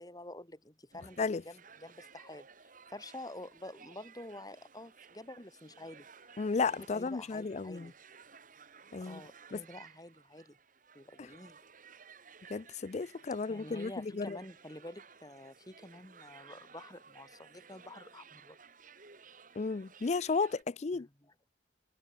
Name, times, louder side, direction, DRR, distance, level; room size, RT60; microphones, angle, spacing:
voice 1, 0.0-6.3 6.9-7.9 9.0-10.6 10.9-11.6 13.5-18.6 20.9-21.3, left 1 dB, 20° left, 5.5 m, -49 dB
sound 1, 0.9-20.6, right 6 dB, 50° right, 3.2 m, -57 dB
voice 2, 6.4-7.9 8.9-9.2 9.5-9.6 12.5-14.4 19.6-21.1, left 4 dB, 40° left, 0.4 m, -33 dB
head